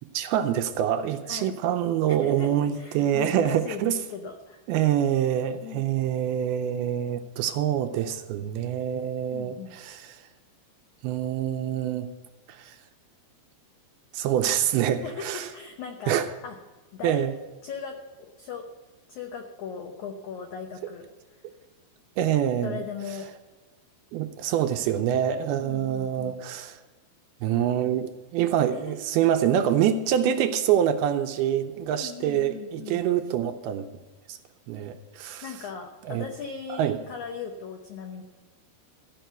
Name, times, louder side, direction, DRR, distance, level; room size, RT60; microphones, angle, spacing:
voice 1, 0.1-4.0 4.7-10.3 11.0-12.1 12.5-12.8 14.1-15.5 16.1-16.3 17.0-17.3 22.2-22.8 24.1-26.8 27.4-33.9 34.3-34.4 34.7-35.5 36.1-36.2 36.7-37.0, right 10 dB, 80° right, 7 dB, 2.4 m, -26 dB
voice 2, 2.2-4.6 5.6-5.9 9.3-9.7 15.0-16.6 16.9-17.2 17.6-18.7 19.1-21.1 22.6-23.3 25.6-26.3 28.7-29.0 31.9-33.0 35.4-38.2, left 6 dB, 90° left, 4 dB, 1.7 m, -38 dB
14.5 x 5.7 x 9.1 m, 1.2 s
omnidirectional pair, 4.8 m